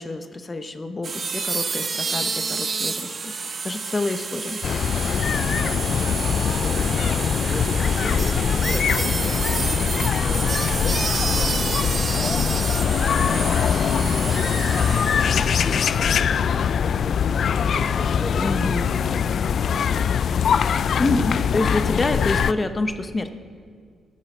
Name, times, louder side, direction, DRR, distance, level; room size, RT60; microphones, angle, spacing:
voice 1, 0.0-3.4 3.6-4.6 18.3-18.8 21.0-23.3, left 2 dB, 25° left, 9 dB, 0.8 m, -27 dB
sound 1, 1.0-16.2, right 4 dB, 40° right, 0.8 m, -29 dB
sound 2, 4.6-22.5, left 7 dB, 60° left, 0.3 m, -22 dB
voice 2, 5.2-9.5 9.9-11.9 12.2-12.5 13.1-16.6 17.7-19.4, left 1 dB, 10° left, -3 dB, 1.7 m, -36 dB
13.5 x 10.0 x 5.4 m, 2.1 s
cardioid pair, 100°, 0 cm